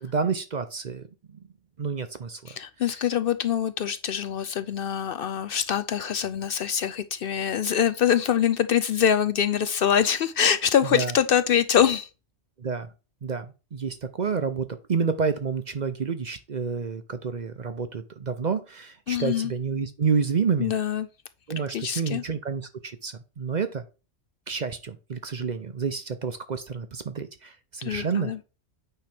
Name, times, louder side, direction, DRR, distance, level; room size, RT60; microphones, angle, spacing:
voice 1, 0.0-1.1 1.8-2.5 10.9-11.1 12.6-12.9 13.2-20.7 21.5-23.8 24.5-28.4, right 5 dB, 45° right, 0.7 m, -29 dB
voice 2, 2.5-12.1 19.1-19.5 20.6-21.1 21.7-22.2 27.8-28.4, left 9 dB, 60° left, 0.6 m, -24 dB
8.9 x 3.1 x 5.9 m
omnidirectional pair, 1.2 m